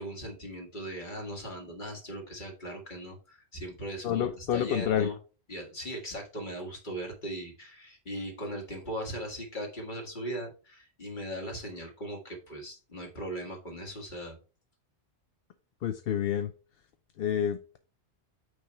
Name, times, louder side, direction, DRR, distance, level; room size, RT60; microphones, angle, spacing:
voice 1, 0.0-5.2 5.5-14.4, right 1 dB, 45° left, 1 dB, 1.9 m, -39 dB
voice 2, 4.0-5.1 15.8-16.5 17.2-17.8, left 9 dB, 60° left, 9 dB, 0.7 m, -28 dB
9.0 x 3.3 x 4.3 m, 0.35 s
omnidirectional pair, 1.2 m